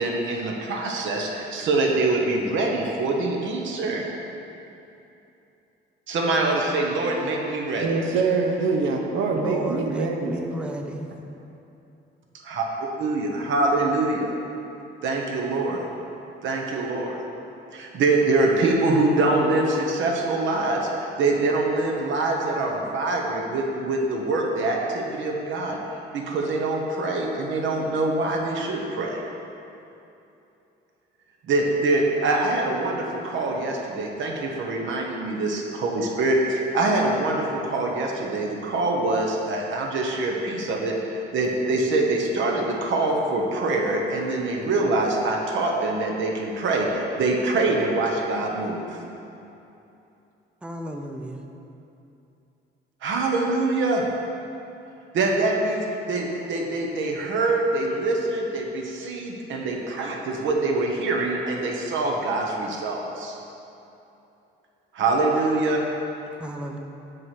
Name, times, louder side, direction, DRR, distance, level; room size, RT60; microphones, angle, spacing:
voice 1, 0.0-4.1 6.1-8.0 12.4-12.6 13.0-14.3 15.0-15.8 16.4-17.2 17.7-25.8 26.1-29.2 31.5-49.0 53.0-54.0 55.1-63.4 64.9-65.8, right 2 dB, 75° right, 0 dB, 1.0 m, -24 dB
voice 2, 7.8-10.3, right 4 dB, 90° right, 2 dB, 0.6 m, -24 dB
voice 3, 9.3-11.1 50.6-51.4 66.4-66.8, right 1 dB, 5° right, 3 dB, 0.5 m, -32 dB
7.6 x 3.2 x 5.9 m, 2.8 s
cardioid pair, 90°, 20 cm